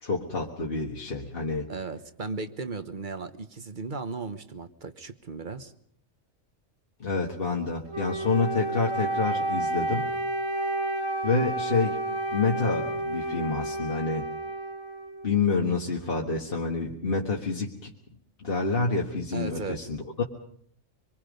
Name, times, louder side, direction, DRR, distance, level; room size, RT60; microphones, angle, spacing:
voice 1, 0.0-1.7 7.0-10.1 11.2-12.0 12.3-14.3 15.2-17.9 18.4-20.2, left 4 dB, 45° left, -1 dB, 1.8 m, -28 dB
voice 2, 1.7-5.7 19.3-19.9, right 4 dB, 40° right, 10 dB, 1.2 m, -36 dB
Wind instrument woodwind instrument, 7.9-15.5, right 1 dB, 80° right, 3.2 m, -31 dB
25.5 x 23.0 x 5.3 m, 0.64 s
omnidirectional pair, 1.3 m